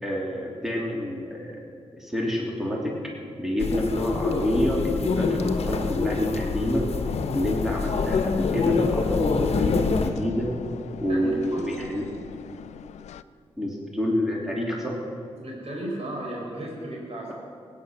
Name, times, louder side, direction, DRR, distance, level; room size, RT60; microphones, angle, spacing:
voice 1, 0.0-1.6 1.9-2.9 3.4-6.8 7.3-10.5 11.0-12.0 13.6-15.0, equal, 5° right, -2 dB, 3.0 m, -27 dB
sound 1, 3.6-10.1, left 4 dB, 65° left, 1.1 m, -26 dB
sound 2, 7.0-13.2, left 9 dB, 85° left, 0.4 m, -38 dB
voice 2, 11.1-11.6 15.4-17.3, right 1 dB, 65° right, -2 dB, 4.7 m, -34 dB
17.0 x 9.4 x 6.4 m, 2.4 s
cardioid pair, 55°, 11 cm